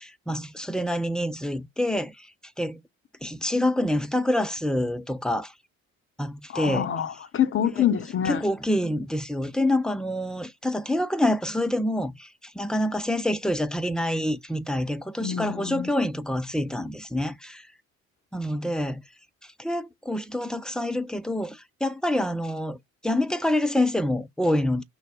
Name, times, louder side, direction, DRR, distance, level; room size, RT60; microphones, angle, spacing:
voice 1, 0.0-2.3 2.6-2.8 3.2-5.5 6.2-6.9 8.3-12.3 12.5-17.7 18.3-19.0 19.6-22.8 23.0-24.8, left 1 dB, ahead, 0.7 m, -26 dB
voice 2, 6.5-8.4 15.2-15.9, left 9 dB, 30° left, 0.9 m, -26 dB
6.2 x 2.2 x 3.8 m
figure-of-eight pair, 45°, 40 cm